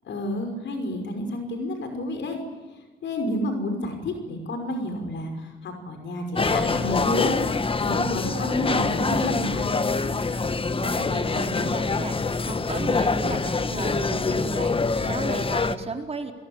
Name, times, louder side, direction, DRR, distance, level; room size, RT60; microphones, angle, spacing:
voice 1, 0.0-2.4 3.0-7.4 7.8-9.7, left 1 dB, 65° left, 5 dB, 5.8 m, -30 dB
sound 1, 6.4-15.8, left 4 dB, 25° left, 1.5 m, -25 dB
voice 2, 10.8-12.2 12.4-16.3, right 4 dB, 30° right, 4 dB, 4.3 m, -34 dB
28.5 x 22.0 x 8.9 m, 1.3 s
cardioid pair, 90°, 20 cm